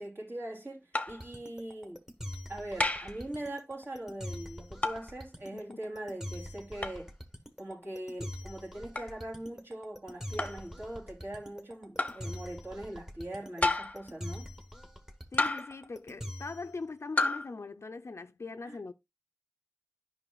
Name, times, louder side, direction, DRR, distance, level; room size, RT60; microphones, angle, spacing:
voice 1, 0.0-2.0 2.5-7.1 7.6-14.5 18.6-18.8, right 1 dB, 55° right, 2.9 m, -41 dB
sound 1, 0.9-1.3 2.8-3.2 4.8-5.1 6.8-7.0 9.0-9.1 10.4-10.7 12.0-12.3 13.6-14.1 15.4-15.8 17.2-17.5, left 2 dB, 25° left, 0.7 m, -30 dB
sound 2, 1.1-16.7, left 1 dB, 10° right, 1.2 m, -43 dB
voice 2, 15.3-18.9, left 3 dB, 65° left, 0.4 m, -41 dB
9.9 x 5.4 x 2.3 m
wide cardioid pair, 45°, 5 cm